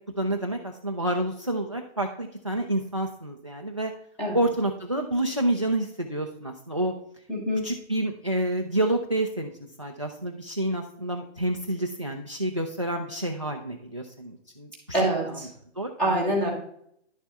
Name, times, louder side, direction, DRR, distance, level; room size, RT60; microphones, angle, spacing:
voice 1, 0.2-3.9 4.3-6.9 7.6-9.5 9.8-15.5 15.8-16.2, right 1 dB, 30° right, 4 dB, 0.3 m, -29 dB
voice 2, 7.3-7.7 14.9-15.5 16.0-16.5, right 1 dB, 5° left, -3 dB, 0.9 m, -25 dB
10.5 x 6.9 x 3.4 m, 0.70 s
hypercardioid pair, 165°, 36 cm